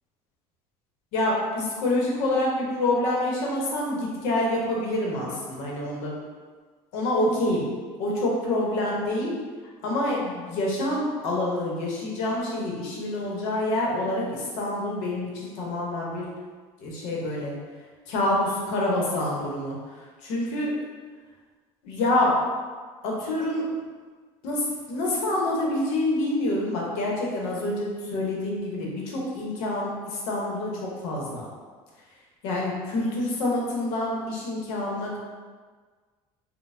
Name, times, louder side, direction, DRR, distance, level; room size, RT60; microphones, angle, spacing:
voice 1, 1.1-6.2 6.9-7.7 8.0-9.3 9.8-16.3 16.8-17.6 18.1-19.8 20.2-20.8 21.8-22.4 23.0-23.7 24.4-31.5 32.4-35.2, left 1 dB, 80° left, -3 dB, 0.9 m, -27 dB
4.0 x 2.1 x 2.6 m, 1.5 s
cardioid pair, 150°, 12 cm